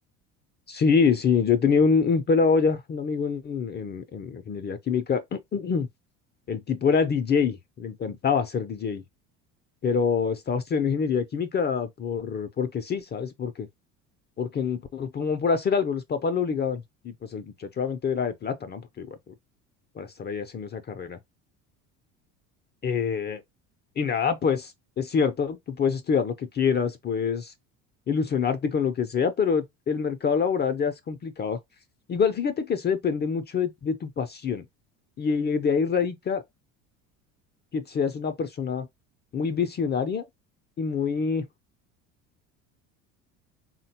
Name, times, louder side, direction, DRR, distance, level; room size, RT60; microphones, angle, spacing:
voice 1, 0.7-5.9 6.5-9.0 9.8-13.7 14.4-19.3 20.0-21.2 22.8-23.4 24.0-27.5 28.1-31.6 32.1-34.7 35.2-36.4 37.7-38.9 39.3-40.3 40.8-41.5, left 6 dB, 25° left, 0.4 m, -26 dB
3.8 x 2.2 x 2.7 m
supercardioid pair, 80°, 39 cm